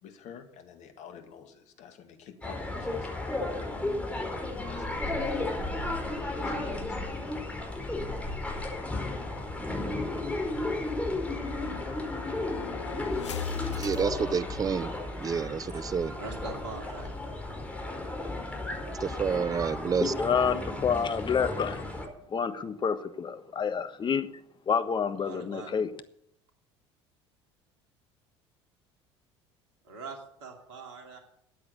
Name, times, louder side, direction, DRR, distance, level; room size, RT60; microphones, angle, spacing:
voice 1, 0.0-3.1 4.1-4.4 4.7-5.6 6.2-7.4 20.9-21.0, left 8 dB, 55° left, 2.0 m, -49 dB
sound 1, 2.4-22.1, left 2 dB, 10° left, 4.6 m, -34 dB
sound 2, 8.4-15.2, left 8 dB, 85° left, 0.6 m, -42 dB
voice 2, 13.7-14.9 15.2-16.1 19.0-20.3, right 6 dB, 25° right, 0.6 m, -29 dB
voice 3, 16.2-17.2 25.2-25.8 29.8-31.2, right 4 dB, 75° right, 2.6 m, -42 dB
voice 4, 20.2-21.8 22.3-24.3 24.7-25.9, left 6 dB, 30° left, 1.3 m, -28 dB
13.5 x 8.7 x 6.9 m
hypercardioid pair, 65°, 15 cm